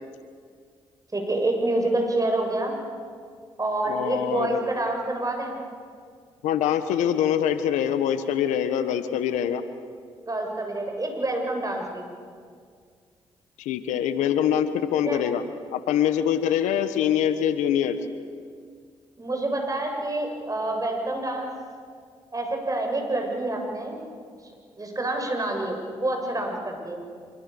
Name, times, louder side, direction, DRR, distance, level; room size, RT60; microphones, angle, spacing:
voice 1, 1.1-2.8 3.6-5.5 10.3-12.1 15.1-15.2 19.2-21.5 22.3-24.0 24.8-27.0, right 2 dB, 30° right, 2 dB, 7.4 m, -27 dB
voice 2, 3.9-4.6 6.4-9.6 13.6-15.4 15.7-18.0, left 9 dB, 85° left, 11 dB, 1.2 m, -24 dB
26.0 x 24.5 x 7.1 m, 2.1 s
supercardioid pair, 50°, 12 cm